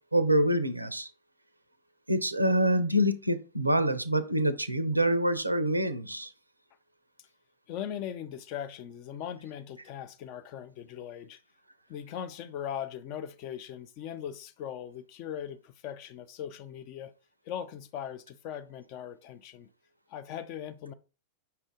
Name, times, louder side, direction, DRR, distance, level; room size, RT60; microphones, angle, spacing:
voice 1, 0.1-1.1 2.1-6.3, equal, 85° right, 0.5 m, -26 dB
voice 2, 7.7-11.4 11.9-17.1 17.4-19.7 20.1-20.9, left 9 dB, 45° left, 0.5 m, -39 dB
5.6 x 2.5 x 3.6 m
figure-of-eight pair, 90°, 0 cm